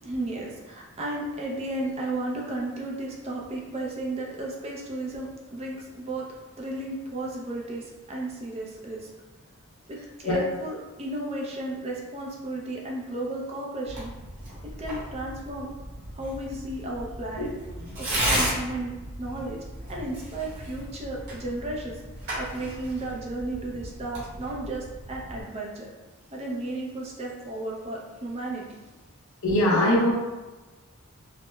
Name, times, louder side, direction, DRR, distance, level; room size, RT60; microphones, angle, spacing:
voice 1, 0.0-6.3 6.6-9.1 9.9-14.1 14.6-15.7 16.1-17.5 18.0-19.6 19.9-22.0 22.4-25.9 26.3-28.7, right 2 dB, 30° right, -3 dB, 0.5 m, -34 dB
Tearing, 13.9-25.4, right 1 dB, 50° right, 1.2 m, -34 dB
voice 2, 29.4-30.1, left 1 dB, 70° left, -4 dB, 0.8 m, -22 dB
4.6 x 2.1 x 2.2 m, 1.2 s
head